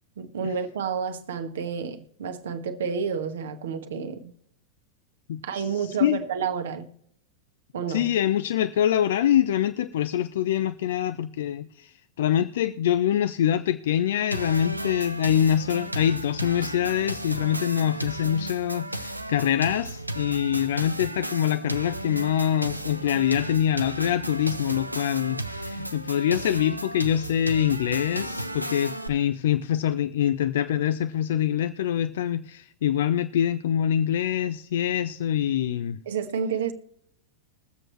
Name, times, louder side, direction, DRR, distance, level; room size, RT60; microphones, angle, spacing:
voice 1, 0.2-4.3 5.4-6.9 7.7-8.1 36.1-36.7, right 6 dB, 60° right, 1.1 m, -30 dB
voice 2, 5.3-6.2 7.9-36.0, left 10 dB, 60° left, 0.5 m, -25 dB
sound 1, 14.3-29.1, right 1 dB, 90° right, 0.6 m, -34 dB
21.5 x 7.6 x 3.1 m
figure-of-eight pair, 90°, 0 cm